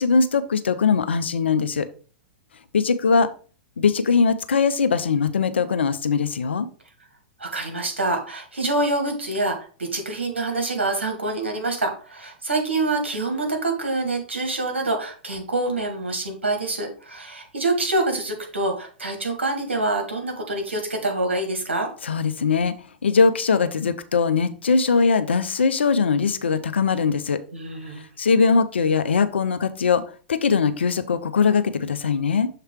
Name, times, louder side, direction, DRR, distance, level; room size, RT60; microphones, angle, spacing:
voice 1, 0.0-1.9 2.7-3.3 3.8-6.7 22.0-22.7 23.0-27.4 28.2-30.0 30.3-32.5, left 5 dB, 75° left, 11 dB, 0.6 m, -21 dB
voice 2, 7.4-21.9 27.5-28.1, right 2 dB, 80° right, 3 dB, 1.8 m, -26 dB
6.7 x 3.3 x 4.5 m, 0.39 s
figure-of-eight pair, 105°, 6 cm